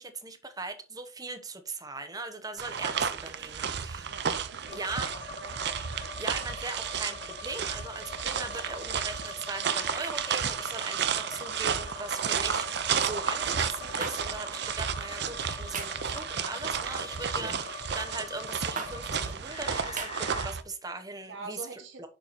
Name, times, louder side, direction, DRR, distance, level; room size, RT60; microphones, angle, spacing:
voice 1, 0.0-4.1 4.7-5.1 6.2-21.6 22.0-22.1, right 3 dB, 20° right, 1.0 m, -39 dB
sound 1, 2.6-20.6, right 7 dB, 60° right, 0.6 m, -32 dB
voice 2, 4.1-5.6 21.3-22.1, right 4 dB, 75° right, 1.7 m, -45 dB
sound 2, 4.7-20.5, left 6 dB, 30° left, 0.5 m, -44 dB
sound 3, 14.0-14.2 15.7-16.0 17.3-17.6 18.8-18.9 20.0-20.1, right 5 dB, 40° right, 1.0 m, -35 dB
6.9 x 4.7 x 4.2 m
head